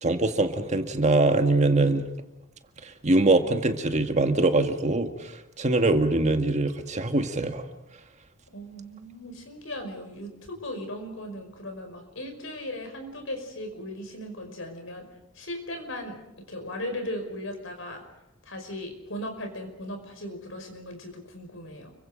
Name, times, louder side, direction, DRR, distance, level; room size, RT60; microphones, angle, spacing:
voice 1, 0.0-2.0 2.8-5.3 5.6-7.6, right 2 dB, 35° right, 6 dB, 1.8 m, -23 dB
voice 2, 8.5-15.1 15.3-16.2 16.5-18.0 18.4-21.9, left 1 dB, 75° left, 5 dB, 5.5 m, -37 dB
30.0 x 24.0 x 5.2 m, 0.94 s
head